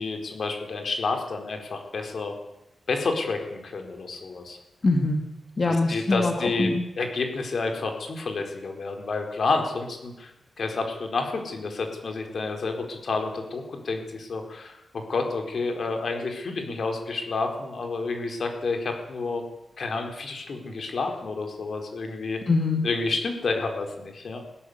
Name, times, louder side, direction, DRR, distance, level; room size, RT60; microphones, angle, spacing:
voice 1, 0.0-2.3 2.9-4.6 5.7-10.3 10.6-19.4 19.8-22.4 22.8-24.4, left 3 dB, 55° left, 4 dB, 4.5 m, -29 dB
voice 2, 4.8-5.3 5.6-6.3 6.6-6.9 22.5-22.8, left 3 dB, 35° left, 3 dB, 2.3 m, -23 dB
21.0 x 16.5 x 8.1 m, 0.91 s
wide cardioid pair, 140°, 0 cm